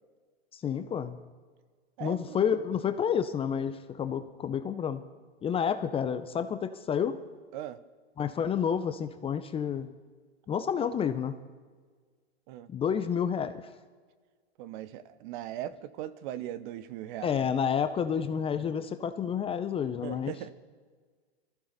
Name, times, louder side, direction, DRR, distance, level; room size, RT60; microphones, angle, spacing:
voice 1, 0.5-1.2 2.0-5.0 5.4-7.2 8.2-9.9 10.5-11.4 12.7-13.6 17.2-20.3, left 7 dB, 15° left, 10 dB, 0.6 m, -30 dB
voice 2, 2.0-2.4 7.5-7.8 12.5-12.7 14.6-17.5 20.0-20.5, right 12 dB, 45° right, 15 dB, 0.9 m, -39 dB
23.5 x 14.5 x 4.1 m, 1.5 s
hypercardioid pair, 120°, 33 cm